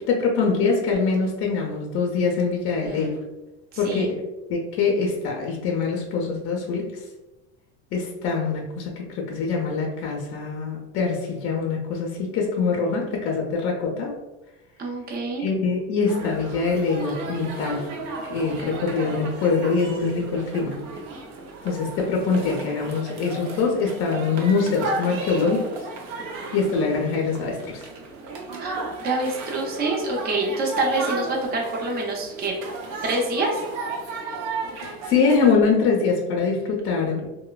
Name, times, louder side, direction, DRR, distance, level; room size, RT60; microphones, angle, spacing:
voice 1, 0.0-3.2 3.8-4.2 4.5-6.9 7.9-14.2 15.4-17.9 18.2-20.8 21.6-25.7 26.5-27.9 34.8-37.3, left 4 dB, 40° left, 0 dB, 0.5 m, -24 dB
voice 2, 14.8-15.4 28.6-32.5 33.0-33.6, right 2 dB, 30° right, -1 dB, 0.6 m, -26 dB
sound 1, 16.1-35.5, right 3 dB, 70° right, 0.6 m, -34 dB
2.9 x 2.1 x 2.2 m, 1.0 s
cardioid pair, 135°, 33 cm